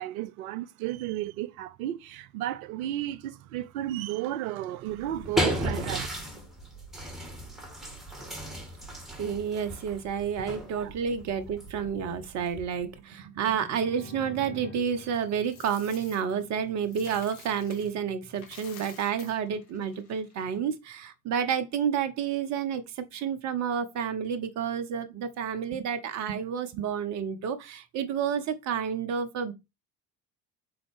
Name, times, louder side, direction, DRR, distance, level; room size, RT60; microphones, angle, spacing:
voice 1, 0.0-6.1 10.6-11.0, right 13 dB, 60° right, 0.5 m, -33 dB
sound 1, 4.9-13.0, equal, ahead, 1.4 m, -35 dB
voice 2, 9.2-29.5, right 7 dB, 35° right, 0.8 m, -30 dB
sound 2, 13.4-17.1, left 2 dB, 15° left, 0.7 m, -47 dB
Coin (dropping), 15.1-18.0 18.3-20.6, left 6 dB, 60° left, 1.2 m, -51 dB
3.9 x 3.8 x 3.5 m
figure-of-eight pair, 60°, 49 cm